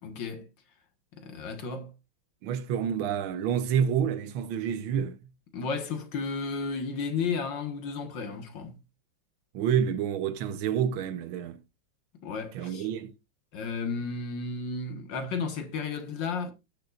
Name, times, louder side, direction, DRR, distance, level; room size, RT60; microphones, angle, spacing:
voice 1, 0.0-0.5 1.1-1.9 5.5-8.8 12.2-12.9 13.5-16.5, left 4 dB, 65° left, 2.1 m, -33 dB
voice 2, 2.4-5.2 9.5-11.6 12.5-13.1, right 8 dB, 85° right, 1.7 m, -28 dB
18.0 x 6.7 x 2.4 m
omnidirectional pair, 2.2 m